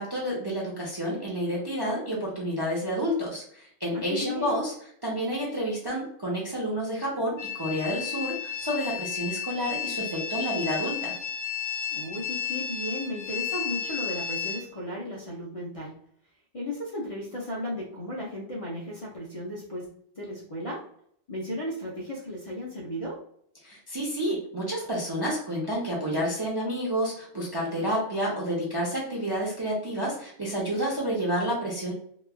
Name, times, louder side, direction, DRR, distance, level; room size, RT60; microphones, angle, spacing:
voice 1, 0.0-4.7 5.0-11.1 23.6-31.9, equal, 30° right, -4 dB, 0.5 m, -29 dB
voice 2, 3.9-4.6 11.9-15.9 16.5-19.9 20.1-20.9 21.3-23.2, left 1 dB, 40° left, -7 dB, 0.5 m, -35 dB
sound 1, 7.4-14.6, left 8 dB, 65° left, 0.9 m, -33 dB
3.0 x 2.3 x 2.2 m, 0.65 s
omnidirectional pair, 1.2 m